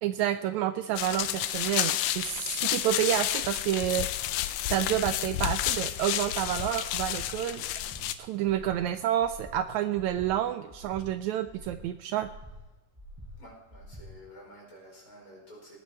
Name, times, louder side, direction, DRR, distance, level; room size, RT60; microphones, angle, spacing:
voice 1, 0.0-4.1 4.7-7.6 8.2-12.3, right 11 dB, 90° right, 10 dB, 1.6 m, -29 dB
sound 1, 1.0-8.1, left 12 dB, 90° left, 2.4 m, -31 dB
Breathing, 6.2-6.5 6.9-7.3 7.7-8.0 8.4-8.8 9.2-9.5 9.9-10.3 10.7-11.0 11.4-11.8 12.2-12.5 12.9-13.3 13.7-14.0, right 1 dB, 5° right, 5.5 m, -47 dB
voice 2, 13.4-15.8, equal, 25° left, -3 dB, 5.2 m, -50 dB
19.5 x 9.6 x 4.3 m, 1.1 s
omnidirectional pair, 3.8 m